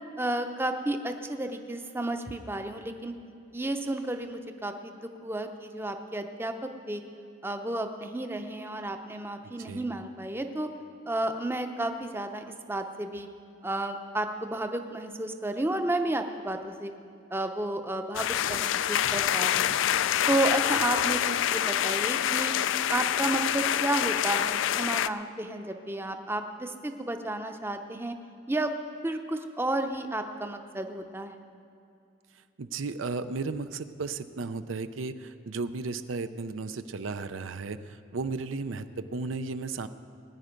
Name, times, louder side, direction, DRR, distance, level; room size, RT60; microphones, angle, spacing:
voice 1, 0.2-3.1 3.5-7.0 7.4-10.7 11.1-13.3 13.6-16.9 17.3-19.7 20.3-22.5 22.9-28.1 28.5-28.7 29.0-31.4, right 1 dB, 10° right, 6 dB, 0.6 m, -32 dB
sound 1, 18.1-25.1, left 10 dB, 70° left, 0.3 m, -26 dB
voice 2, 32.6-39.9, right 4 dB, 80° right, 11 dB, 0.6 m, -34 dB
20.0 x 9.7 x 5.2 m, 2.6 s
head